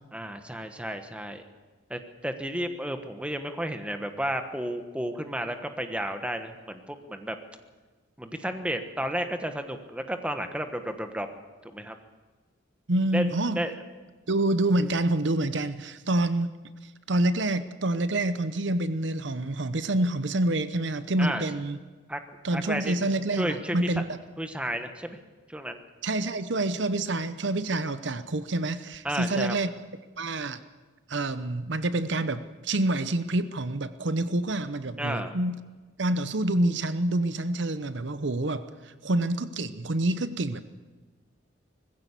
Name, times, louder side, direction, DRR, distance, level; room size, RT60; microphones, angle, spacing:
voice 1, 0.1-1.4 1.9-7.4 8.2-11.3 11.6-11.9 13.1-13.2 13.5-13.7 21.2-21.4 22.1-22.2 22.5-23.0 23.3-24.0 24.4-25.2 25.5-25.8 29.0-29.5 35.0-35.4, right 1 dB, 5° right, 7 dB, 1.3 m, -32 dB
voice 2, 12.9-13.6 14.3-16.5 17.1-21.8 22.4-24.2 26.0-29.7 30.2-30.6 31.1-35.6 36.0-40.6, right 1 dB, 65° right, 12 dB, 0.8 m, -27 dB
20.0 x 15.5 x 8.3 m, 1.3 s
head